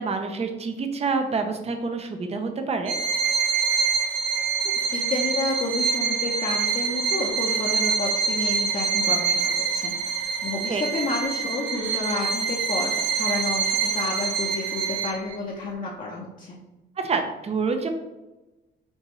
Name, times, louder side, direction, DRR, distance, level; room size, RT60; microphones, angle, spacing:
voice 1, 0.0-2.9 10.7-10.8 17.0-17.9, right 4 dB, 30° right, 6 dB, 0.6 m, -27 dB
Bowed string instrument, 2.9-15.4, right 5 dB, 75° right, 0.6 m, -25 dB
voice 2, 4.9-16.6, left 3 dB, 40° left, -4 dB, 0.8 m, -30 dB
5.3 x 2.6 x 3.1 m, 1.0 s
cardioid pair, 90°, 20 cm